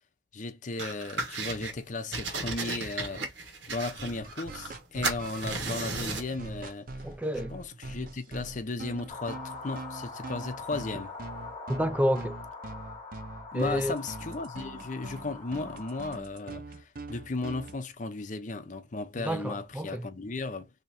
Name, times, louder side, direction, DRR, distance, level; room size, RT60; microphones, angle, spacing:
voice 1, 0.3-3.2 3.7-6.9 7.5-11.1 13.5-20.7, left 3 dB, 40° left, 0.5 m, -35 dB
sound 1, 0.8-1.7 2.1-4.8 5.0-6.3, right 3 dB, 65° right, 1.1 m, -35 dB
sound 2, 4.0-17.8, right 2 dB, 45° right, 0.6 m, -42 dB
voice 2, 7.0-7.5 11.7-12.4 13.5-14.0 19.2-20.1, equal, 5° right, 0.3 m, -29 dB
sound 3, 9.1-16.2, left 4 dB, 20° left, 0.9 m, -43 dB
2.8 x 2.6 x 4.2 m
head